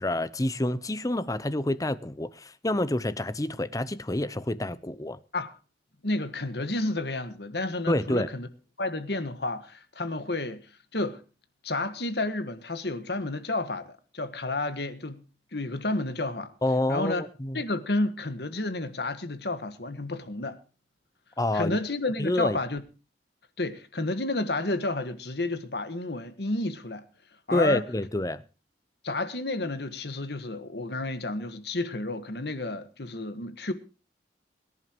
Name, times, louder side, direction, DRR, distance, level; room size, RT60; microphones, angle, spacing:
voice 1, 0.0-5.2 7.9-8.3 16.6-17.6 21.4-21.8 22.2-22.6 27.5-28.4, left 1 dB, 20° left, 0.7 m, -28 dB
voice 2, 6.0-8.5 8.8-11.2 11.6-15.2 15.5-16.5 16.9-17.3 17.5-20.6 21.5-22.8 23.6-27.1 27.5-27.8 29.0-33.7, left 2 dB, 65° left, 1.6 m, -31 dB
23.5 x 11.0 x 3.0 m
head